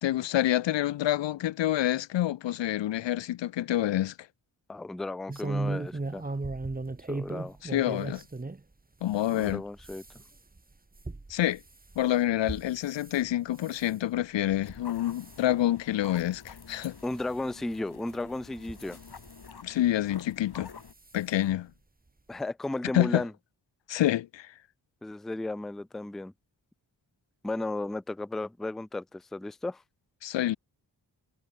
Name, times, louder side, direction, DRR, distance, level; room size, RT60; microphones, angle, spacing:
voice 1, 0.0-4.1 7.6-8.2 9.0-9.6 11.3-11.6 12.0-17.0 19.6-20.7 21.1-21.7 22.9-23.2 23.9-24.5 30.2-30.6, left 13 dB, 70° left, 0.6 m, -27 dB
voice 2, 4.7-6.3 7.1-7.6 9.3-10.0 17.0-19.0 22.3-23.3 25.0-26.3 27.4-29.8, left 2 dB, ahead, 0.4 m, -34 dB
sound 1, 5.3-8.6 9.1-13.2 13.6-13.9 14.5-14.8 15.1-15.4 16.0-16.1 16.5-16.6 17.7-17.8 18.6-19.4 20.5-20.7 21.1-21.2 21.5-21.6, right 3 dB, 20° right, 1.3 m, -36 dB
sound 2, 14.6-20.9, left 5 dB, 55° left, 2.5 m, -48 dB
cardioid pair, 40°, 45 cm